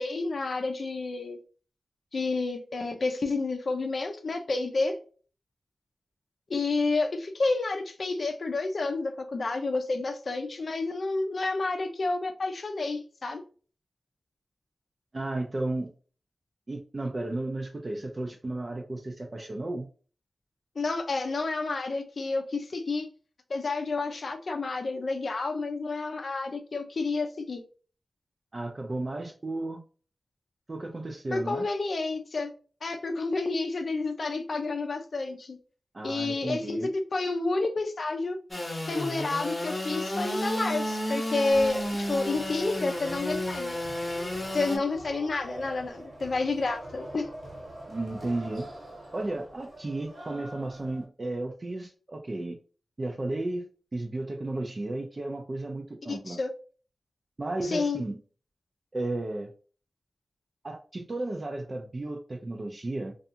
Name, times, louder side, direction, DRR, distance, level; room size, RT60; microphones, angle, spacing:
voice 1, 0.0-1.4 2.1-5.0 6.5-13.4 20.8-23.1 23.5-27.6 31.3-32.5 32.8-35.6 36.0-36.8 37.1-38.4 38.9-43.7 44.5-47.3 56.1-56.5 57.6-58.0, left 3 dB, 65° left, 4 dB, 0.4 m, -30 dB
voice 2, 15.1-15.9 16.7-19.9 28.5-29.8 30.7-31.7 35.9-36.9 47.9-48.7 49.1-52.6 53.0-56.4 57.4-58.2 58.9-59.5 60.6-63.2, right 2 dB, 40° right, 2 dB, 0.4 m, -33 dB
Engine / Sawing, 38.5-44.8, left 1 dB, 25° left, 0.8 m, -32 dB
sound 1, 41.5-51.0, right 1 dB, 80° right, 1.1 m, -45 dB
2.5 x 2.3 x 2.7 m, 0.39 s
wide cardioid pair, 75°, 0 cm